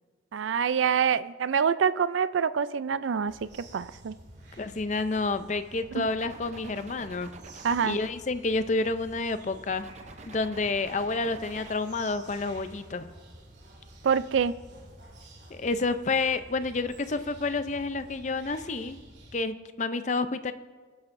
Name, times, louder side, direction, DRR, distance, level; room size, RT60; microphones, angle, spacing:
voice 1, 0.3-4.2 5.9-6.1 7.6-8.0 14.0-14.6, right 7 dB, 85° right, 15 dB, 0.4 m, -26 dB
sound 1, 3.3-19.4, right 1 dB, 65° right, 2.3 m, -50 dB
voice 2, 4.6-7.3 7.8-9.9 10.3-13.1 15.5-19.0 19.3-20.5, left 3 dB, 40° left, 11 dB, 0.5 m, -29 dB
sound 2, 6.1-9.3 9.7-12.0, right 3 dB, 35° right, 0.6 m, -49 dB
22.0 x 10.5 x 2.6 m, 1.4 s
head